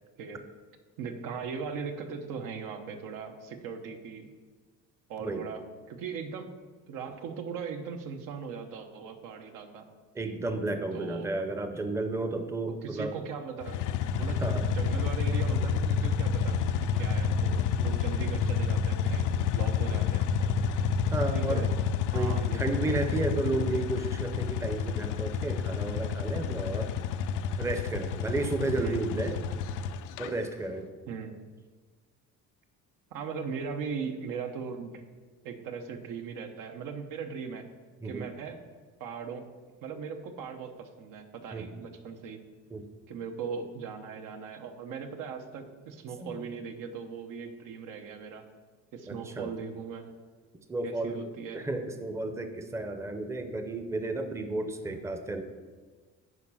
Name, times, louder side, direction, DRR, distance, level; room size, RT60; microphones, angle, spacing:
voice 1, 1.0-4.3 5.1-6.5 6.9-9.9 10.9-11.4 12.7-13.8 14.2-20.5 21.3-21.7 22.1-23.2 28.7-29.0 31.1-31.4 33.1-34.9 35.4-37.7 38.0-38.6 39.0-39.5 39.8-42.4 43.1-48.5 48.9-50.1 50.8-51.7 54.9-55.0, right 6 dB, 75° right, 5 dB, 1.1 m, -39 dB
voice 2, 10.1-13.1 14.4-14.7 21.1-21.7 22.1-26.9 27.6-29.4 30.2-30.9 38.0-38.3 41.5-41.7 42.7-42.9 46.2-46.4 49.1-49.5 50.7-51.3 51.5-55.4, right 2 dB, 10° right, 7 dB, 0.6 m, -32 dB
sound 1, 13.6-30.3, left 6 dB, 70° left, 0.6 m, -29 dB
9.6 x 5.0 x 5.6 m, 1.4 s
cardioid pair, 125°, 32 cm